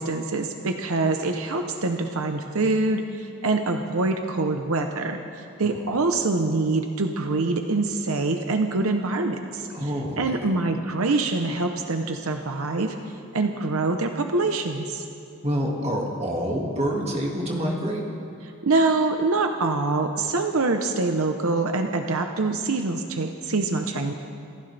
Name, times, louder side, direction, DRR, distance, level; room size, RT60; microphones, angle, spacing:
voice 1, 0.0-9.7 10.2-12.9 13.3-15.0 18.6-24.1, right 3 dB, 75° right, 5 dB, 0.9 m, -25 dB
voice 2, 9.7-10.4 15.4-18.1, equal, 30° right, -1 dB, 2.1 m, -27 dB
26.5 x 15.5 x 3.4 m, 2.6 s
head